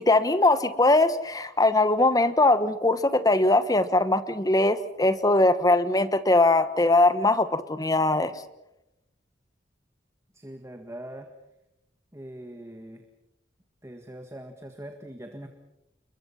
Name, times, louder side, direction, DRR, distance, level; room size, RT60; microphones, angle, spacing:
voice 1, 0.0-8.3, left 2 dB, 20° left, 12 dB, 1.2 m, -21 dB
voice 2, 10.3-11.3 12.1-13.0 13.8-15.5, right 1 dB, 15° right, 5 dB, 1.7 m, -42 dB
29.5 x 22.5 x 5.7 m, 0.87 s
head